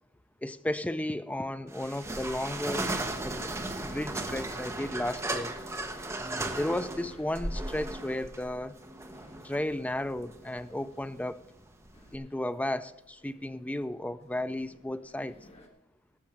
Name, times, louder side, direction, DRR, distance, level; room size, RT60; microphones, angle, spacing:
voice 1, 0.4-2.9 3.2-3.5 3.8-5.5 6.2-8.8 9.4-11.4 12.1-15.4, left 1 dB, 5° left, 0.4 m, -34 dB
sound 1, 1.7-12.2, right 2 dB, 15° right, 1.0 m, -36 dB
sound 2, 2.4-15.7, left 1 dB, 30° left, 1.7 m, -57 dB
14.5 x 6.2 x 7.6 m
head